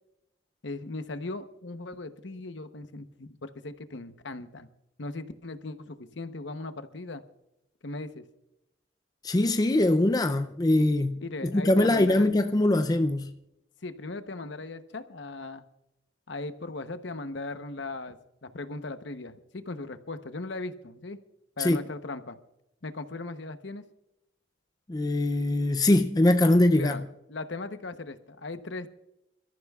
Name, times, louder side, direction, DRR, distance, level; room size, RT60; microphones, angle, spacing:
voice 1, 0.6-4.7 5.0-7.2 7.8-8.2 11.2-12.3 13.8-15.7 16.3-18.2 18.4-21.2 21.6-22.4 22.8-23.8 26.7-28.9, left 2 dB, 70° left, 0.9 m, -38 dB
voice 2, 9.2-13.3 21.6-21.8 24.9-27.0, left 1 dB, 20° left, 0.4 m, -22 dB
27.0 x 14.0 x 2.4 m
head